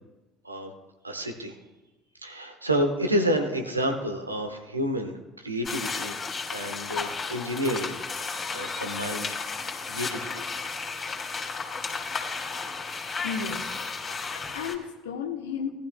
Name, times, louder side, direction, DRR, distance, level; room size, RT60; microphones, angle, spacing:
voice 1, 1.0-1.5 2.2-5.1 5.4-6.1 6.5-9.4 9.9-10.4, equal, 90° right, 4 dB, 1.2 m, -29 dB
sound 1, 5.6-14.8, left 4 dB, 35° left, 2.5 m, -33 dB
voice 2, 13.2-13.7 14.1-15.7, left 6 dB, 75° left, 4 dB, 1.2 m, -34 dB
17.5 x 11.5 x 2.3 m, 1.1 s
figure-of-eight pair, 60°, 0 cm